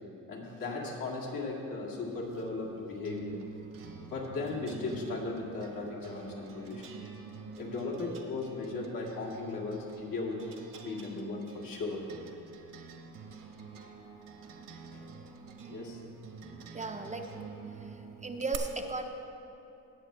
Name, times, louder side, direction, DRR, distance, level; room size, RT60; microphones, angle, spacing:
voice 1, 0.3-3.4 4.0-6.8 7.6-10.4 10.8-12.1 14.7-15.0 15.7-16.0, left 3 dB, 75° left, -3 dB, 2.3 m, -37 dB
sound 1, 2.1-18.6, right 6 dB, 70° right, 1.1 m, -47 dB
voice 2, 16.7-17.2 18.2-19.1, right 3 dB, 20° right, 4 dB, 0.5 m, -35 dB
18.5 x 7.6 x 3.3 m, 2.8 s
cardioid pair, 115°, 34 cm